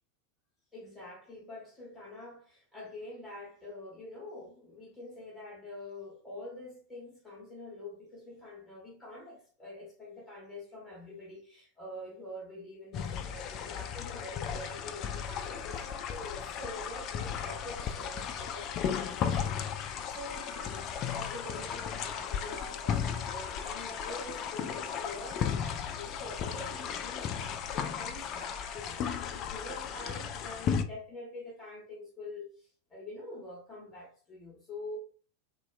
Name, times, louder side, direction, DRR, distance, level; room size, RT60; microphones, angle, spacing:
voice 1, 0.7-35.0, left 1 dB, 15° left, 0.9 m, -46 dB
sound 1, 12.9-30.8, left 7 dB, 35° left, 0.3 m, -35 dB
4.0 x 2.2 x 2.3 m
figure-of-eight pair, 90°, 0 cm